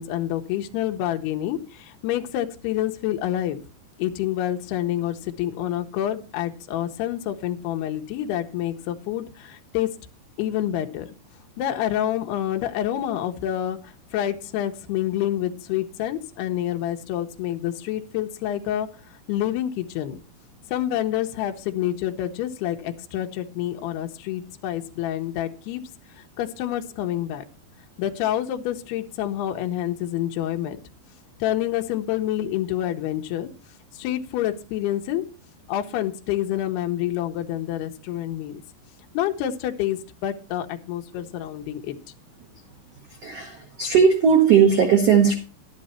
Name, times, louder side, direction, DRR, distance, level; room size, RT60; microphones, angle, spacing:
voice 1, 0.0-3.6 4.0-9.9 10.4-11.1 11.6-18.9 19.3-20.2 20.7-25.8 26.2-27.4 28.0-30.8 31.4-33.5 33.9-35.2 35.7-38.6 39.1-42.0, left 12 dB, 75° left, 4 dB, 2.8 m, -27 dB
voice 2, 43.2-45.4, right 7 dB, 85° right, 4 dB, 1.4 m, -17 dB
11.5 x 10.5 x 4.2 m, 0.34 s
omnidirectional pair, 5.0 m